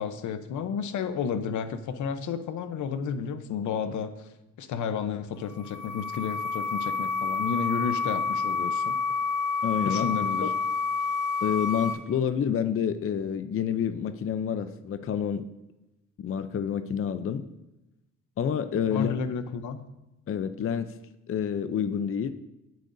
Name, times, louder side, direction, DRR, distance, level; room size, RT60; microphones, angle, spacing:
voice 1, 0.0-4.1 4.6-8.9 9.9-10.5 18.9-19.8, left 7 dB, 75° left, 10 dB, 0.9 m, -32 dB
sound 1, 5.4-11.9, left 5 dB, 20° left, 4.5 m, -29 dB
voice 2, 9.6-10.1 10.4-10.5 11.4-15.4 16.2-17.4 18.4-19.1 20.3-20.9 21.3-22.3, left 8 dB, 45° left, 10 dB, 0.6 m, -28 dB
22.0 x 7.7 x 2.7 m, 0.96 s
cardioid pair, 90°, 30 cm